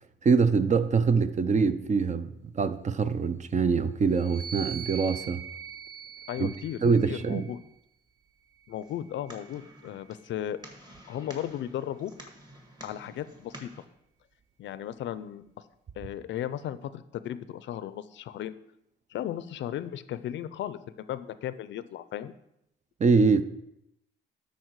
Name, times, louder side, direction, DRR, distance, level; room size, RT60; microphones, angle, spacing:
voice 1, 0.2-5.4 6.4-6.5 6.8-7.5 23.0-23.4, right 5 dB, 35° right, 0.6 m, -24 dB
sound 1, 4.1-7.7 8.5-10.1, right 7 dB, 65° right, 3.8 m, -43 dB
voice 2, 6.3-6.8 7.0-7.6 8.7-10.6 11.1-12.1 12.8-13.7 14.6-15.4 16.0-18.6 19.1-22.3, left 11 dB, 70° left, 0.5 m, -35 dB
sound 2, 8.8-13.8, right 1 dB, 20° right, 1.7 m, -50 dB
12.0 x 4.3 x 4.6 m
cardioid pair, 90°, 20 cm